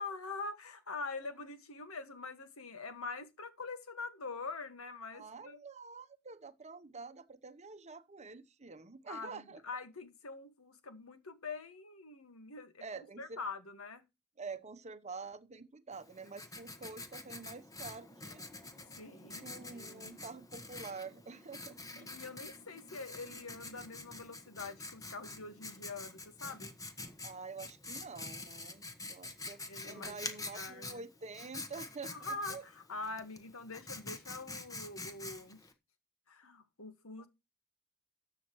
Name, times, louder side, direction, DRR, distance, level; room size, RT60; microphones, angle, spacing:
voice 1, 0.0-5.6 9.1-14.0 18.9-20.2 21.9-26.7 29.7-30.2 30.5-31.0 32.1-35.6 36.3-37.3, left 3 dB, 80° left, 1.7 m, -44 dB
voice 2, 5.1-9.6 12.8-13.4 14.4-18.5 19.4-22.1 27.2-32.6 37.2-37.3, right 4 dB, 30° right, 0.9 m, -47 dB
Writing, 15.9-35.7, left 2 dB, 15° left, 1.4 m, -47 dB
13.5 x 8.5 x 3.1 m
head